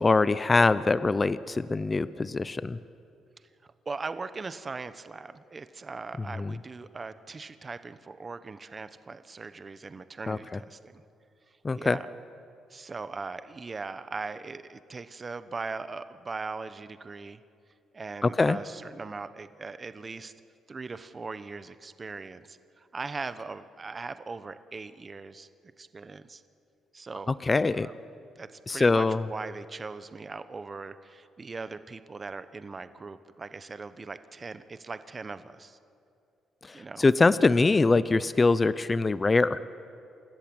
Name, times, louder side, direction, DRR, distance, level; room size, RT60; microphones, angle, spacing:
voice 1, 0.0-2.8 6.4-6.5 10.3-10.4 11.6-12.0 18.2-18.6 27.4-27.9 28.7-29.2 36.7-39.6, left 3 dB, 25° left, 16 dB, 0.6 m, -23 dB
voice 2, 3.9-11.0 11.8-12.1 12.7-17.4 17.9-20.3 20.7-26.4 26.9-27.4 27.7-27.9 28.4-35.8 36.7-37.1, right 4 dB, 30° right, 12 dB, 1.0 m, -40 dB
28.0 x 14.0 x 8.8 m, 2.5 s
cardioid pair, 90°, 0 cm